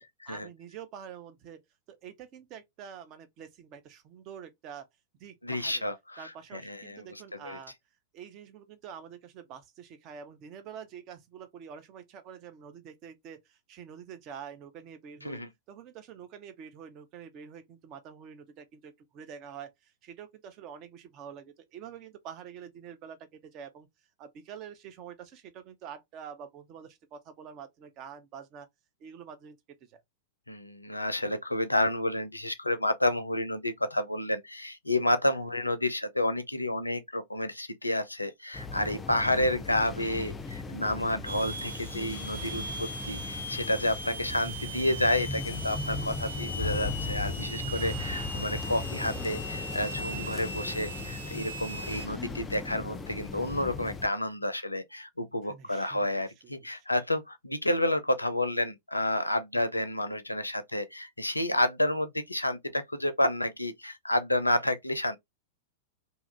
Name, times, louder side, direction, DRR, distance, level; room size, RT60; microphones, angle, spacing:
voice 1, 0.0-1.6 1.9-4.9 5.2-5.9 6.2-7.7 8.1-23.9 24.2-28.7 29.0-30.0 35.2-35.4 39.4-39.6 52.1-52.4 55.4-56.9 59.5-59.9, right 8 dB, 35° right, 0.7 m, -47 dB
voice 2, 5.4-7.0 7.4-7.6 15.2-15.5 30.5-65.2, left 1 dB, 85° left, 0.5 m, -30 dB
sound 1, 38.5-54.1, left 3 dB, 15° left, 0.4 m, -37 dB
sound 2, 41.3-52.1, right 1 dB, 85° right, 0.9 m, -40 dB
2.8 x 2.4 x 3.2 m
figure-of-eight pair, 100°, 0 cm